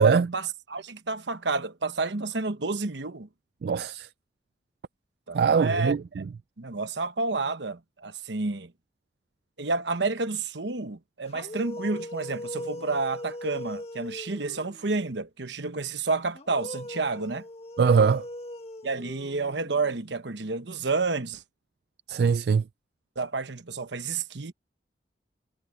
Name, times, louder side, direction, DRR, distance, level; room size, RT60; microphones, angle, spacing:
voice 1, 0.0-3.3 5.3-5.9 6.6-8.7 9.6-17.4 18.8-21.4 23.2-24.5, right 3 dB, 80° right, 1.1 m, -30 dB
voice 2, 3.6-4.1 5.3-6.2 17.8-18.2 22.1-22.6, right 5 dB, 60° right, 0.3 m, -22 dB
sound 1, 11.3-15.0 16.3-20.0, left 1 dB, 35° left, 1.7 m, -40 dB
head